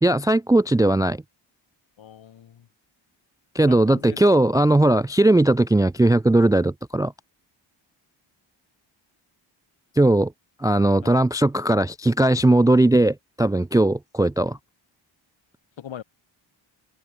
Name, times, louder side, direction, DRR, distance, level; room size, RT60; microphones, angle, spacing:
voice 1, 0.0-1.2 3.5-7.1 10.0-10.3 10.6-14.6, right 1 dB, 10° right, 0.4 m, -18 dB
voice 2, 2.0-2.7 3.6-4.2 11.0-11.2 15.8-16.0, left 9 dB, 65° left, 4.2 m, -40 dB
open air
wide cardioid pair, 155°, 48 cm